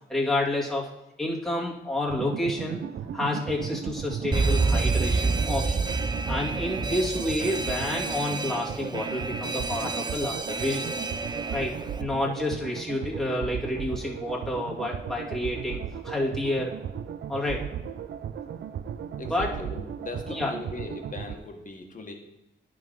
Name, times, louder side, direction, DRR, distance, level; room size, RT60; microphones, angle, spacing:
voice 1, 0.1-0.9 1.2-2.8 3.1-5.8 6.3-10.9 11.5-16.7 17.3-17.7 19.3-19.5 20.3-20.5, left 1 dB, ahead, -5 dB, 2.2 m, -29 dB
sound 1, 2.1-21.3, right 8 dB, 70° right, 0.5 m, -36 dB
Alarm, 4.3-12.0, right 3 dB, 25° right, 0.6 m, -28 dB
voice 2, 19.2-22.1, left 2 dB, 45° left, 3 dB, 1.4 m, -39 dB
10.5 x 3.9 x 5.3 m, 0.95 s
cardioid pair, 60°, 19 cm